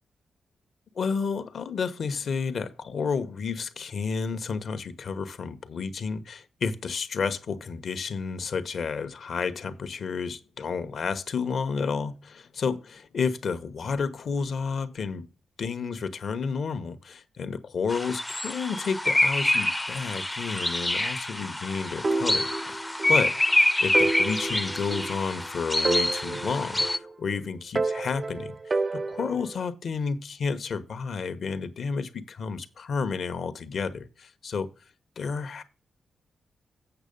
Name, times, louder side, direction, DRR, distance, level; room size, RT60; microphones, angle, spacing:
voice 1, 0.9-15.3 15.6-34.7 35.2-35.6, left 5 dB, 60° left, 1.1 m, -31 dB
sound 1, 17.9-27.0, left 1 dB, 10° left, 0.5 m, -26 dB
sound 2, 22.0-23.2 23.5-23.6 23.9-25.5 25.9-27.3 27.8-29.6, right 3 dB, 35° right, 0.5 m, -30 dB
8.1 x 6.4 x 5.3 m
cardioid pair, 95°, 0 cm